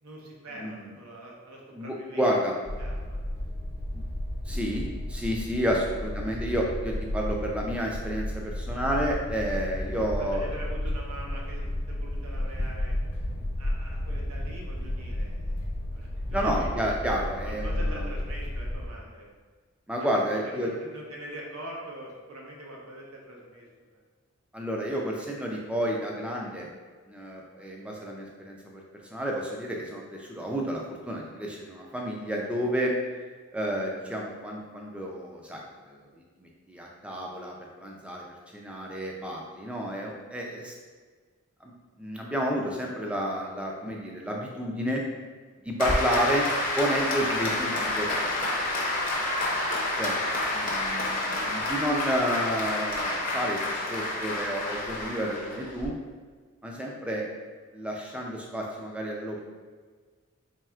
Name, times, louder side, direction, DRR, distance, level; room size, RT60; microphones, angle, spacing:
voice 1, 0.0-2.3 2.8-3.2 5.8-5.9 10.0-12.9 13.6-15.6 15.9-16.7 17.4-19.3 20.0-24.0 49.5-49.8, right 1 dB, 85° right, -2 dB, 0.8 m, -44 dB
voice 2, 1.7-2.5 3.9-4.0 4.5-10.5 16.3-18.0 19.9-20.7 24.5-26.7 27.1-28.8 29.1-32.9 33.5-36.0 36.4-38.2 38.5-40.7 41.6-41.7 42.0-45.0 45.6-46.5 46.8-48.5 50.0-55.9 56.6-57.2 57.7-59.4, equal, 5° right, -1 dB, 0.4 m, -31 dB
sound 1, 2.6-18.9, left 1 dB, 70° left, 0.8 m, -32 dB
Applause, 45.8-55.9, left 2 dB, 35° left, 0.6 m, -29 dB
4.3 x 3.3 x 2.3 m, 1.5 s
head